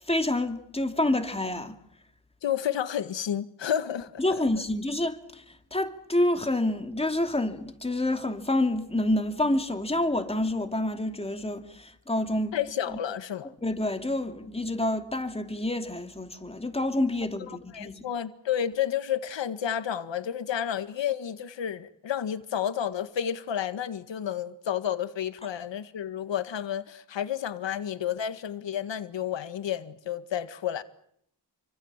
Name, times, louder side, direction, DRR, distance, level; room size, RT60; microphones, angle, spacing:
voice 1, 0.1-1.8 4.2-12.6 12.9-13.0 13.6-18.0, left 1 dB, 15° left, 2.6 m, -28 dB
voice 2, 2.4-4.2 12.5-13.5 17.4-30.8, left 9 dB, 85° left, 1.8 m, -31 dB
29.5 x 24.5 x 7.4 m
wide cardioid pair, 130°, 43 cm